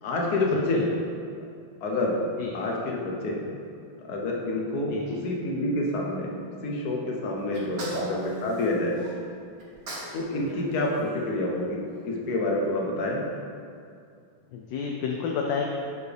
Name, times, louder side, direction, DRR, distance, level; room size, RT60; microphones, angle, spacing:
voice 1, 0.0-0.9 1.8-2.2 2.5-3.4 4.0-6.3 6.6-9.0 10.1-13.2, left 2 dB, 55° left, -2 dB, 1.4 m, -28 dB
Sneeze, 7.5-9.1 9.6-10.2 10.5-11.9, right 1 dB, 50° right, 1.6 m, -38 dB
voice 2, 14.5-15.7, left 6 dB, 75° left, 1 dB, 1.2 m, -30 dB
10.5 x 4.5 x 3.4 m, 2.4 s
omnidirectional pair, 2.2 m